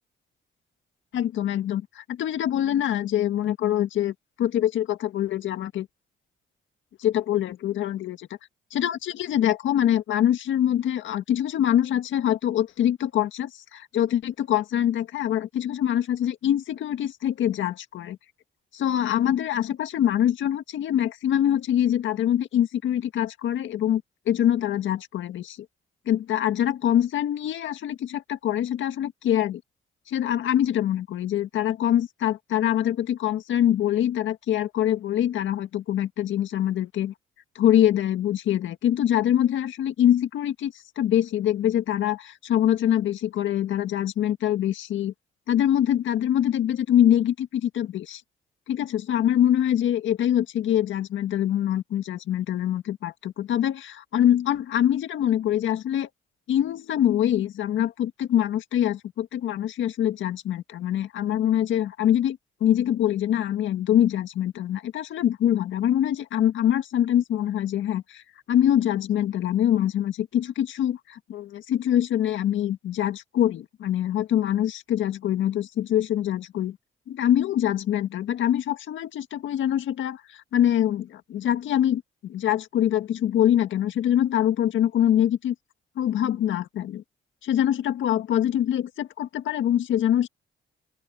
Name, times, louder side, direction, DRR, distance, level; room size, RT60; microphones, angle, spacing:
voice 1, 1.1-5.9 7.0-8.3 8.7-18.2 18.7-24.0 24.3-25.6 26.1-29.6 30.1-37.1 37.6-45.1 45.5-48.2 48.7-56.1 56.5-68.2 68.5-76.8 77.1-85.6 86.0-87.0 87.4-90.3, left 11 dB, 75° left, 1.8 m, -24 dB
open air
cardioid pair, 90°, 20 cm